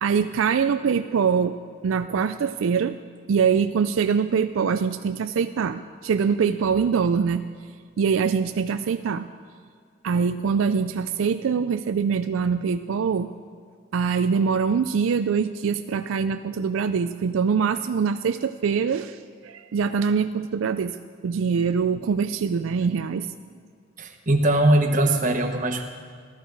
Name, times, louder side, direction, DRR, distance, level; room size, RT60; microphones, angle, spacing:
voice 1, 0.0-1.6 1.8-3.0 3.3-7.4 8.0-9.3 10.0-13.3 13.9-21.0 21.2-23.3, right 6 dB, 80° right, 10 dB, 0.4 m, -23 dB
voice 2, 24.0-25.8, right 1 dB, 40° right, 4 dB, 1.1 m, -21 dB
14.0 x 13.0 x 4.7 m, 2.1 s
head